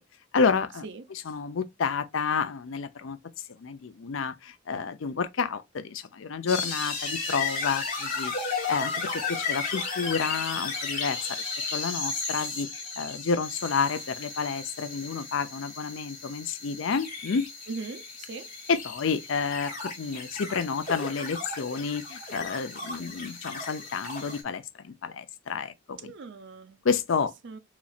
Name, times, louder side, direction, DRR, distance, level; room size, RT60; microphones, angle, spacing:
voice 1, 0.3-0.8 1.3-3.2 3.6-8.3 8.7-11.4 11.7-17.4 18.7-26.1 26.8-27.3, left 5 dB, 80° left, 0.5 m, -30 dB
sound 1, 6.5-24.4, left 4 dB, 45° left, 2.0 m, -34 dB
voice 2, 17.7-18.5 26.0-26.8 27.4-27.6, right 4 dB, 65° right, 0.5 m, -40 dB
4.1 x 3.0 x 2.3 m
head